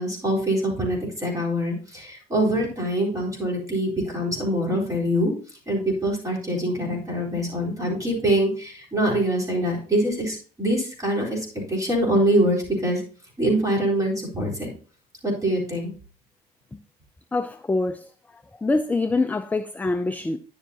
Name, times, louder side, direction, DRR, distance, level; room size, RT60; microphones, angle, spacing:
voice 1, 0.0-5.3 5.7-13.0 13.4-14.7 15.2-15.9, right 1 dB, 20° right, 4.1 m, -24 dB
voice 2, 17.3-18.1 18.3-20.4, left 3 dB, 10° left, 0.4 m, -25 dB
10.0 x 7.2 x 2.8 m
cardioid pair, 110°, 17 cm